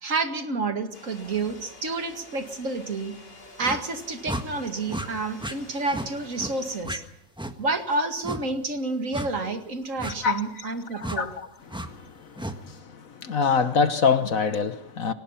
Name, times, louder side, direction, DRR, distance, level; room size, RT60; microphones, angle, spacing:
voice 1, 0.0-3.1 3.6-7.0 7.6-11.3, right 3 dB, 50° right, 2.5 m, -29 dB
sound 1, 0.9-6.8, left 2 dB, 90° left, 5.2 m, -48 dB
sound 2, 3.6-3.8 4.3-4.5 4.9-5.1 5.4-5.6 5.9-6.1 6.4-6.5 6.8-7.0 7.4-7.5 8.2-8.4 9.1-9.3 10.0-10.1 11.0-11.2 11.7-11.9 12.4-12.6, right 1 dB, 5° right, 1.4 m, -32 dB
voice 2, 10.2-10.7 11.0-15.1, left 5 dB, 55° left, 1.4 m, -26 dB
23.5 x 19.0 x 5.8 m
omnidirectional pair, 1.8 m